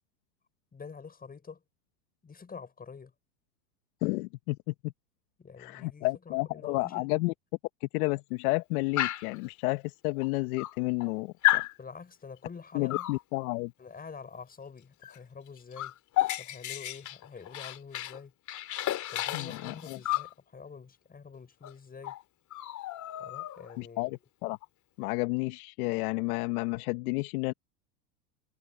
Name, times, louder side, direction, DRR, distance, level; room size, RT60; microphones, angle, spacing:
voice 1, 0.7-1.6 2.2-3.1 5.4-7.1 11.8-13.1 13.8-15.9 16.4-18.3 19.1-22.2 23.2-24.2, left 5 dB, 20° left, 6.8 m, -46 dB
voice 2, 4.0-4.9 5.6-7.3 7.8-11.6 12.7-13.7 19.3-20.0 23.8-24.6 25.0-27.5, left 23 dB, 65° left, 1.4 m, -31 dB
Dog, 9.0-9.4 10.2-10.3 10.6-11.1 11.4-11.7 12.9-13.2 15.0-15.2 15.5-18.2 18.5-20.3 21.6-21.7 22.0-22.2 22.5-23.8, left 15 dB, 35° left, 3.0 m, -32 dB
supercardioid pair, 115°, 47 cm